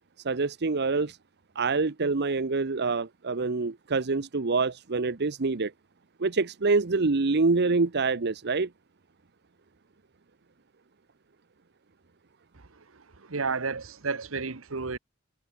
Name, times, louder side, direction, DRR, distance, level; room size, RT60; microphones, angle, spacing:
voice 1, 0.2-1.2 1.5-5.7 6.2-8.7, right 3 dB, 55° right, 0.9 m, -26 dB
voice 2, 13.3-15.0, right 4 dB, 75° right, 1.2 m, -31 dB
head